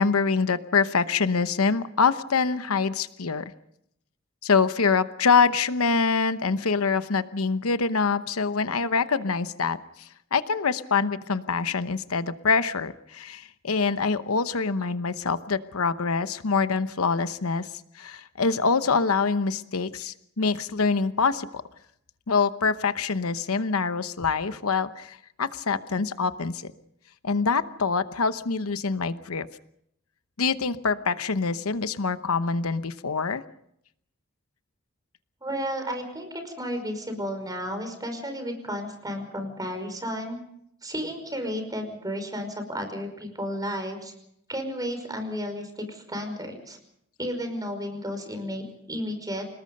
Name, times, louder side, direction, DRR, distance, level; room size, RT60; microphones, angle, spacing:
voice 1, 0.0-3.4 4.4-9.8 10.3-17.7 18.0-21.6 22.3-26.6 27.2-29.5 30.4-33.4, left 5 dB, 90° left, 12 dB, 0.9 m, -25 dB
voice 2, 35.4-40.4 40.8-44.1 44.5-46.8 47.2-49.4, equal, 20° right, 6 dB, 5.4 m, -33 dB
28.5 x 19.5 x 5.4 m, 0.73 s
head